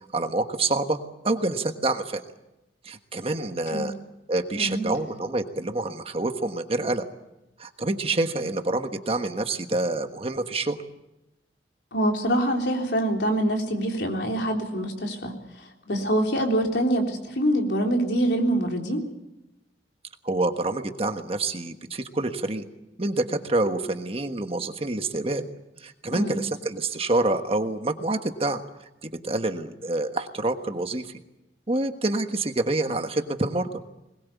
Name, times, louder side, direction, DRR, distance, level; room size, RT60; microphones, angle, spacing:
voice 1, 0.1-1.0 1.2-2.2 2.8-3.9 4.3-7.0 7.6-10.8 15.9-16.1 20.2-22.6 23.0-25.5 25.8-28.6 29.0-31.2 31.7-33.7, right 2 dB, 35° right, 7 dB, 1.4 m, -27 dB
voice 2, 4.6-4.9 11.9-19.0 26.1-26.4, right 1 dB, 75° left, 2 dB, 3.7 m, -25 dB
21.5 x 21.0 x 8.4 m, 0.93 s
head